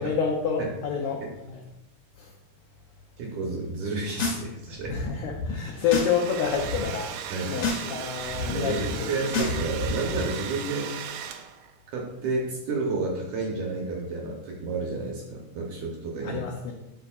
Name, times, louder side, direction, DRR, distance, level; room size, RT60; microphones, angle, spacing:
voice 1, 0.0-1.6 2.2-2.3 4.9-7.1 7.5-9.1 9.4-9.5 16.2-16.7, left 6 dB, 85° left, 1 dB, 1.7 m, -28 dB
voice 2, 3.2-5.0 7.3-7.6 8.5-11.1 11.9-16.4, right 3 dB, 70° right, -1 dB, 2.0 m, -31 dB
sound 1, 3.9-4.4 4.7-6.2 6.4-6.8 7.3-7.9 8.1-10.2, left 3 dB, 60° left, 2.4 m, -31 dB
Domestic sounds home sounds, 5.7-11.7, right 9 dB, 85° right, 1.9 m, -37 dB
9.9 x 6.3 x 2.4 m, 0.96 s
omnidirectional pair, 4.5 m